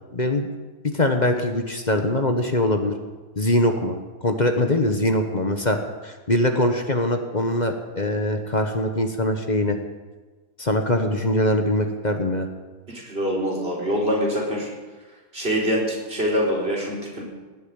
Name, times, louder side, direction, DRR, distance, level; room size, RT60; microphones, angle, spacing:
voice 1, 0.1-0.5 0.8-2.9 3.4-5.8 6.0-9.8 10.6-12.5, left 1 dB, 30° left, 5 dB, 1.2 m, -22 dB
voice 2, 12.9-14.7 15.3-17.2, equal, 35° right, -3 dB, 4.4 m, -24 dB
18.0 x 8.8 x 8.9 m, 1.3 s
omnidirectional pair, 1.8 m